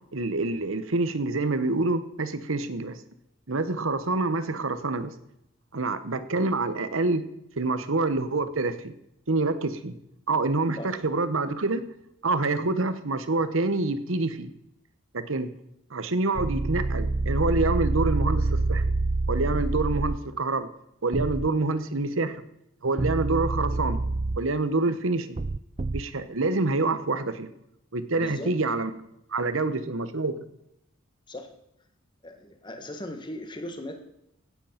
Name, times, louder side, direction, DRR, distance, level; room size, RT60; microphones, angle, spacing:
voice 1, 0.1-3.0 3.5-5.1 5.7-7.2 7.6-8.9 9.3-9.9 10.3-11.8 12.2-14.5 15.1-15.5 15.9-18.8 19.3-20.7 21.0-22.4 22.8-24.0 24.4-25.4 25.9-27.5 27.9-28.9 29.3-30.4, right 3 dB, 75° right, 12 dB, 1.1 m, -26 dB
sound 1, 16.4-20.2 21.1-21.5 23.0-24.4 25.4-26.0, right 2 dB, 30° right, 0.4 m, -26 dB
voice 2, 28.2-28.5 31.3-31.5 32.2-34.0, left 1 dB, 20° left, 6 dB, 1.6 m, -37 dB
16.5 x 8.4 x 5.8 m, 0.80 s
head